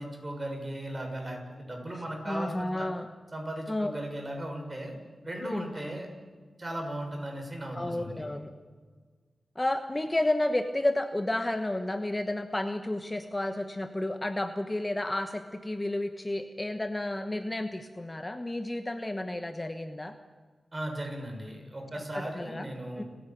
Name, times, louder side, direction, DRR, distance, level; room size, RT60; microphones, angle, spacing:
voice 1, 0.0-2.9 3.3-4.9 5.2-6.1 6.6-8.2 20.7-23.1, right 1 dB, 30° right, 2 dB, 6.6 m, -37 dB
voice 2, 2.2-3.1 3.7-3.9 5.4-5.7 7.7-8.5 9.5-20.1 22.1-22.7 23.0-23.1, left 1 dB, 20° left, 8 dB, 1.2 m, -31 dB
30.0 x 10.5 x 9.2 m, 1.5 s
wide cardioid pair, 75°, 0 cm